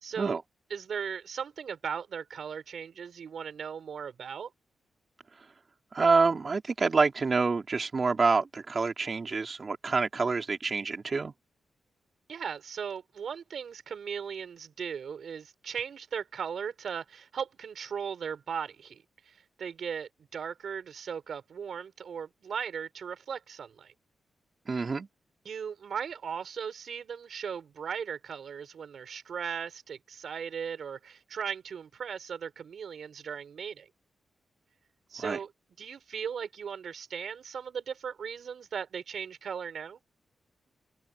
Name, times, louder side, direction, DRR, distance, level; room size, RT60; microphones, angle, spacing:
voice 1, 0.0-0.4 0.7-4.5 12.3-23.9 25.4-33.9 35.1-35.5 35.8-40.0, right 7 dB, 70° right, 4.3 m, -37 dB
voice 2, 5.9-11.3 24.7-25.1 35.2-35.4, right 4 dB, 40° right, 3.8 m, -27 dB
cardioid pair, 85°, 0 cm